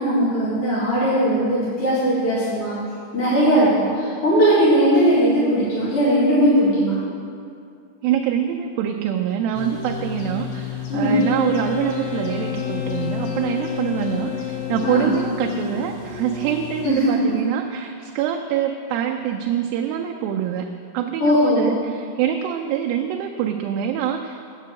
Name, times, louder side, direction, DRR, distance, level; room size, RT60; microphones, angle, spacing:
voice 1, 0.0-2.8 3.1-7.0 10.9-11.2 14.8-15.1 16.8-17.1 21.2-21.7, equal, 45° left, -9 dB, 2.6 m, -19 dB
voice 2, 8.0-20.7 20.9-24.4, right 9 dB, 85° right, 2 dB, 2.3 m, -25 dB
sound 1, 9.5-16.9, left 7 dB, 80° left, 1.5 m, -32 dB
Wind instrument woodwind instrument, 11.0-15.6, left 11 dB, 25° left, 0.6 m, -31 dB
8.2 x 7.4 x 7.6 m, 2.4 s
omnidirectional pair, 4.3 m